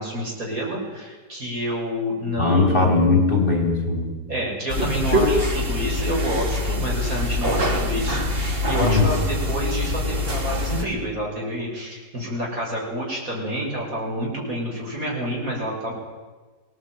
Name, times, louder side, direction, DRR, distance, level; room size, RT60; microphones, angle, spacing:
voice 1, 0.0-3.1 4.3-15.9, equal, 50° right, -2 dB, 7.4 m, -28 dB
voice 2, 2.4-4.1 4.8-5.3 8.8-9.1, left 3 dB, 30° left, 3 dB, 4.4 m, -19 dB
sound 1, 4.7-10.8, left 2 dB, 35° right, 2.3 m, -25 dB
20.5 x 18.0 x 9.4 m, 1.3 s
omnidirectional pair, 1.8 m